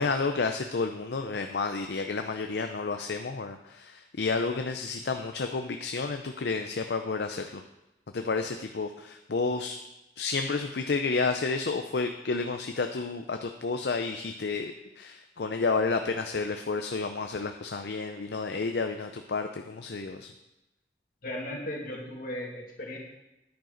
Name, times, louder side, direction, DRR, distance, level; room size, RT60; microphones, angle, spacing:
voice 1, 0.0-7.6 8.1-9.8 10.2-20.3, left 4 dB, 70° left, 6 dB, 0.5 m, -31 dB
voice 2, 21.2-23.0, left 1 dB, 55° left, -1 dB, 2.3 m, -36 dB
10.5 x 9.2 x 3.9 m, 0.94 s
head